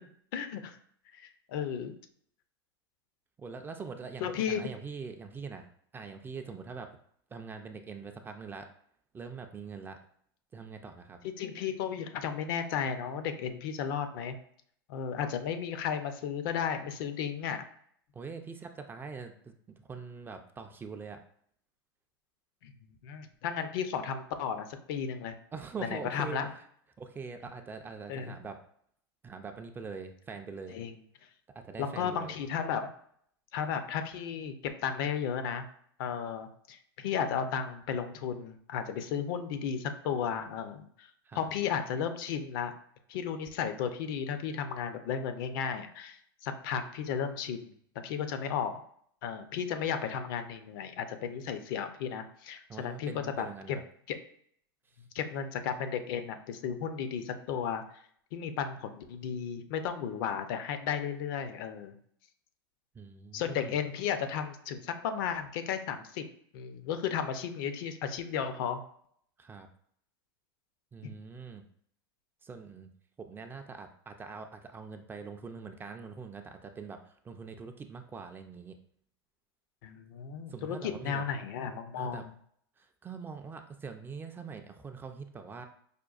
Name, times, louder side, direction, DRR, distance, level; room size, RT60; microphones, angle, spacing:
voice 1, 0.3-0.8 1.2-2.0 4.2-4.7 11.4-14.4 14.9-17.6 22.6-22.7 23.0-25.4 25.8-26.5 28.1-28.3 30.7-30.9 31.8-32.9 33.5-35.6 36.0-41.1 41.3-42.7 43.1-46.2 46.4-47.7 48.0-48.8 49.2-53.1 53.4-53.8 54.1-54.2 55.1-57.8 58.3-62.0 63.3-66.2 66.5-68.8 71.0-71.1 79.8-82.3, left 7 dB, 60° left, 9 dB, 0.5 m, -34 dB
voice 2, 3.4-6.9 7.3-8.7 9.1-10.0 10.5-11.2 18.1-21.2 25.5-26.4 27.0-28.6 29.2-30.8 31.5-32.4 41.2-41.5 52.7-53.8 62.9-63.8 69.4-69.7 70.9-71.6 72.4-72.9 73.2-78.8 80.5-81.2 82.0-82.2 82.8-85.6, right 5 dB, 15° right, 5 dB, 0.3 m, -43 dB
5.0 x 2.2 x 2.3 m, 0.64 s
hypercardioid pair, 105°, 13 cm